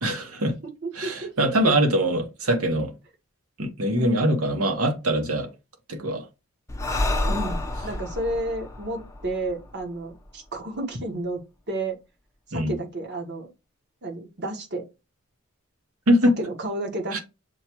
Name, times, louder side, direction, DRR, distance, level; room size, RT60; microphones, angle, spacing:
voice 1, 0.0-0.5 0.9-2.9 3.6-5.5 5.9-6.3 12.5-12.7 16.1-16.3 17.1-17.2, right 1 dB, 80° right, 1.2 m, -23 dB
voice 2, 0.6-1.7 4.0-4.3 7.3-11.4 11.7-12.0 12.5-13.5 14.0-14.9 16.4-17.2, right 2 dB, 50° right, 1.3 m, -31 dB
Breathing, 6.7-10.2, left 1 dB, 15° left, 0.7 m, -29 dB
6.7 x 2.3 x 2.9 m
head